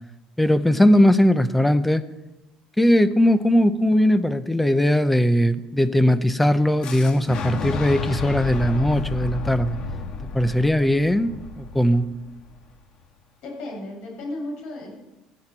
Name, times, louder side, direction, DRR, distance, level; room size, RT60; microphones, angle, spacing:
voice 1, 0.4-2.0 2.8-9.8 10.3-12.1, left 1 dB, 5° left, 12 dB, 0.5 m, -19 dB
Boom, 6.8-12.7, left 3 dB, 40° left, 1.3 m, -31 dB
voice 2, 13.4-14.9, left 1 dB, 60° left, -2 dB, 7.0 m, -34 dB
15.5 x 15.5 x 4.4 m, 1.0 s
cardioid pair, 175°, 2 cm